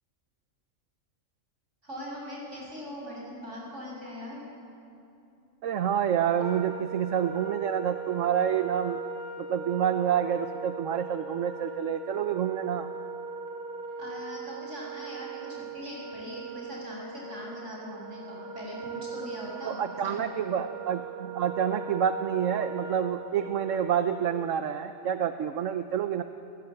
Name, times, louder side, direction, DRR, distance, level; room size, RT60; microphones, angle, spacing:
voice 1, 1.8-4.4 14.0-19.8 20.0-20.2, equal, 70° right, -3 dB, 7.9 m, -41 dB
voice 2, 5.6-9.0 9.4-12.9 19.6-26.2, right 9 dB, 90° right, 9 dB, 1.2 m, -28 dB
Wind instrument woodwind instrument, 6.4-24.5, right 4 dB, 50° right, 3.2 m, -40 dB
29.5 x 17.5 x 9.0 m, 2.8 s
omnidirectional pair, 1.3 m